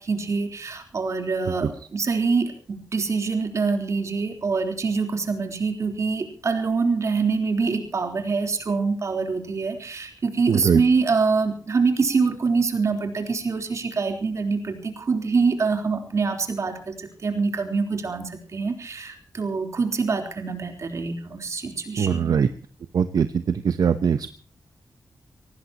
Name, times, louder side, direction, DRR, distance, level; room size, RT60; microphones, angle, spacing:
voice 1, 0.0-22.3, right 4 dB, 50° right, 4 dB, 3.7 m, -25 dB
voice 2, 10.5-10.8 22.0-22.5 22.9-24.3, right 7 dB, 70° right, 10 dB, 1.0 m, -21 dB
24.0 x 18.5 x 3.0 m, 0.41 s
wide cardioid pair, 170°, 7 cm